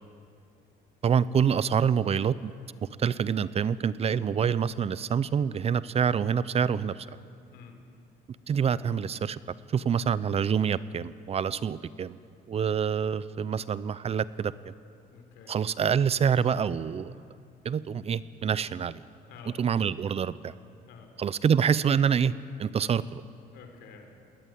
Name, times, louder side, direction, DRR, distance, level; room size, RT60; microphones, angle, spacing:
voice 1, 1.0-2.5 3.0-7.1 8.5-9.4 9.7-12.2 12.5-14.7 15.5-17.1 17.6-19.0 19.6-20.5 21.2-22.3 22.6-23.2, right 7 dB, 35° right, 17 dB, 0.6 m, -26 dB
voice 2, 15.1-15.6 19.3-19.6 20.9-21.1 23.5-24.2, left 6 dB, 85° left, 5 dB, 4.0 m, -50 dB
20.5 x 19.0 x 9.3 m, 2.4 s
cardioid pair, 110°, 17 cm